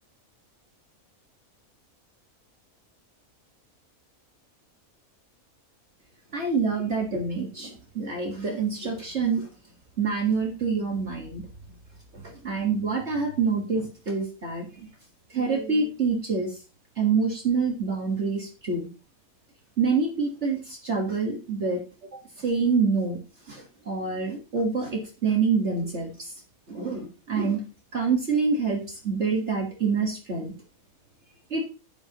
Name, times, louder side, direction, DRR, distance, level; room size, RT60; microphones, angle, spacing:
voice 1, 6.3-9.5 10.0-11.4 12.1-14.9 15.3-16.6 17.0-18.9 19.8-21.8 22.4-23.2 23.5-26.3 26.7-27.7 27.9-30.5 31.5-31.7, right 4 dB, 50° right, 1 dB, 1.9 m, -26 dB
10.5 x 10.0 x 3.0 m, 0.34 s
omnidirectional pair, 1.5 m